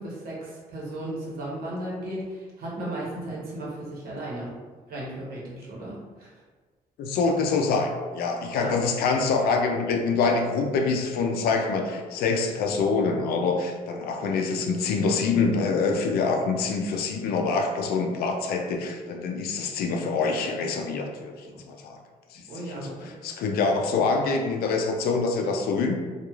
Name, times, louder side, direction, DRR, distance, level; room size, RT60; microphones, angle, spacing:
voice 1, 0.0-4.5 4.9-6.3 8.5-8.8 22.5-23.1 23.3-23.4, right 1 dB, 75° right, -5 dB, 1.0 m, -35 dB
voice 2, 7.0-22.0 22.3-22.4 22.7-25.9, left 4 dB, 90° left, 3 dB, 0.4 m, -25 dB
2.9 x 2.3 x 2.3 m, 1.4 s
cardioid pair, 95°, 15 cm